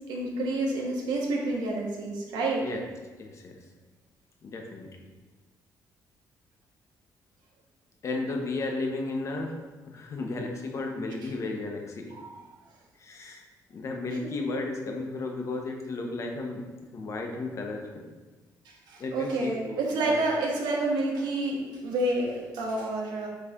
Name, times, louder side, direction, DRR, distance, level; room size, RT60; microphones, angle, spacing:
voice 1, 0.1-2.6 12.1-12.4 18.9-23.3, right 2 dB, 85° right, -1 dB, 1.3 m, -29 dB
voice 2, 3.2-3.6 4.4-5.1 8.0-9.5 9.9-12.1 13.0-13.4 13.7-16.6 16.9-18.0 19.0-20.2, left 3 dB, 45° left, 2 dB, 0.9 m, -34 dB
8.0 x 3.2 x 3.7 m, 1.2 s
cardioid pair, 125°, 7 cm